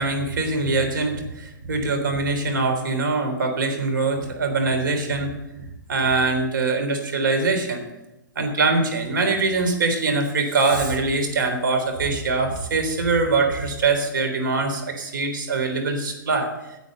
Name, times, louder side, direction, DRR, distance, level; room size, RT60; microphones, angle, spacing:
voice 1, 0.0-5.3 5.9-7.8 8.4-16.5, right 3 dB, 80° right, 5 dB, 3.5 m, -23 dB
11.0 x 8.1 x 7.8 m, 0.94 s
hypercardioid pair, 135°, 11 cm